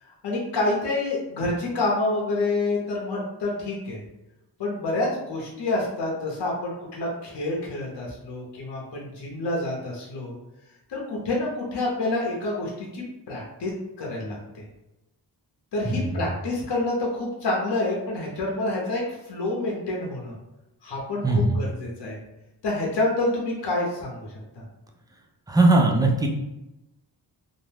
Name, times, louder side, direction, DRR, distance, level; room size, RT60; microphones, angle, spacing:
voice 1, 0.0-4.0 4.6-10.3 10.9-14.6 15.7-20.3 20.8-22.2 22.6-24.6, left 2 dB, 70° left, -2 dB, 0.8 m, -28 dB
voice 2, 25.5-26.3, right 2 dB, 10° right, 1 dB, 0.4 m, -19 dB
2.5 x 2.1 x 3.2 m, 0.95 s
wide cardioid pair, 70°, 42 cm